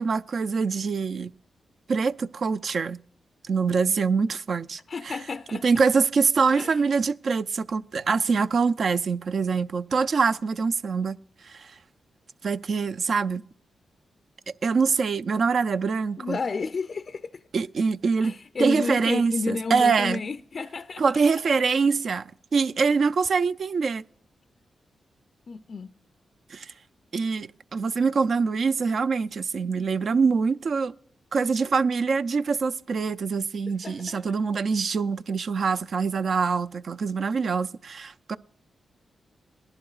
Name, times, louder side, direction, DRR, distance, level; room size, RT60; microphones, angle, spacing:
voice 1, 0.0-1.3 1.9-3.0 3.4-4.8 5.1-5.2 5.6-11.2 11.4-11.8 12.4-13.4 14.6-16.4 17.5-18.3 18.6-20.2 21.0-24.0 26.5-26.7 27.1-30.9 31.3-38.4, right 5 dB, 65° right, 0.4 m, -24 dB
voice 2, 4.9-5.7 6.6-6.8 16.2-17.5 18.2-21.0 25.5-25.9 33.8-34.4, left 4 dB, 55° left, 0.4 m, -32 dB
18.5 x 11.5 x 2.4 m
cardioid pair, 55°, 0 cm